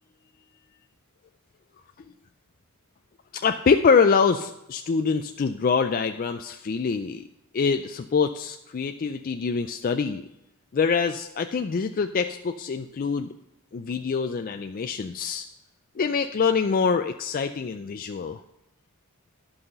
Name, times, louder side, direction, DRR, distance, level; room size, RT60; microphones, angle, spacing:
voice 1, 3.3-7.2 7.5-10.3 10.7-13.3 13.7-15.5 16.0-18.4, left 5 dB, 40° left, 6 dB, 0.4 m, -25 dB
11.0 x 5.7 x 6.7 m, 0.88 s
head